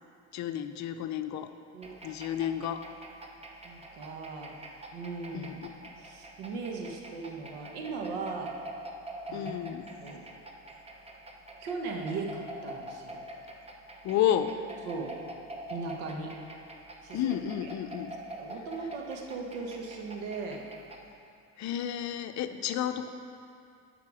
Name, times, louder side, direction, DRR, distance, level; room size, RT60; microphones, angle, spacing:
voice 1, 0.3-1.5 2.0-2.8 5.3-5.9 9.3-9.9 14.0-14.5 17.1-18.1 21.6-23.1, left 10 dB, 55° left, 9 dB, 0.6 m, -31 dB
sound 1, 1.8-21.1, right 1 dB, 15° right, 0.9 m, -45 dB
voice 2, 3.6-4.5 4.9-5.5 6.0-8.6 9.3-9.5 10.0-10.2 11.6-13.2 14.8-15.1 15.7-16.3 17.0-17.3 17.6-17.7 18.4-20.6, right 4 dB, 80° right, 2 dB, 1.3 m, -38 dB
11.0 x 5.8 x 4.9 m, 2.5 s
supercardioid pair, 90°, 35 cm